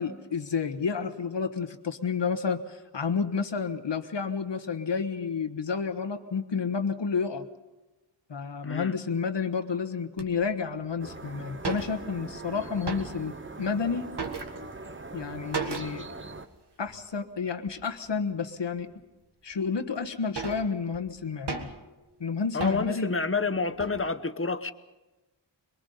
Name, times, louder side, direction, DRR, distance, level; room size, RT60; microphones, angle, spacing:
voice 1, 0.0-7.5 8.3-14.1 15.1-16.1 16.8-18.9 19.4-21.7 22.2-23.1, left 5 dB, 70° left, 8 dB, 1.4 m, -30 dB
voice 2, 8.6-8.9 22.5-24.7, left 4 dB, 30° left, 12 dB, 1.0 m, -29 dB
sound 1, 10.2-10.3 11.0-11.1 11.2-11.3 11.5-12.4 12.7-13.4 13.8-14.9 15.5-16.1 16.4-16.5 16.9-17.1 17.7-18.2 18.7-18.8 19.5-19.6 20.0-22.0 22.6-23.1 23.5-24.0, right 4 dB, 60° right, 1.8 m, -36 dB
sound 2, 11.0-16.5, right 2 dB, 25° right, 1.0 m, -42 dB
23.0 x 22.5 x 5.5 m, 1.1 s
wide cardioid pair, 80°, 45 cm